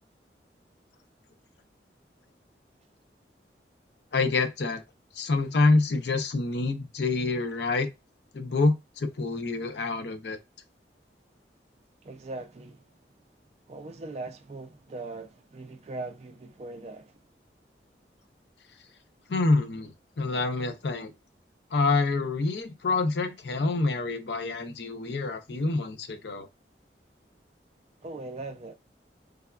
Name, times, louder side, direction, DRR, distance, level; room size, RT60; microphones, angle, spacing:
voice 1, 4.1-4.8 5.1-7.9 8.3-10.4 19.3-21.1 21.7-26.5, left 3 dB, 75° left, 0.5 m, -27 dB
voice 2, 12.0-12.9 13.7-17.2 28.0-28.7, right 2 dB, 35° right, 0.3 m, -40 dB
3.4 x 2.2 x 2.2 m
head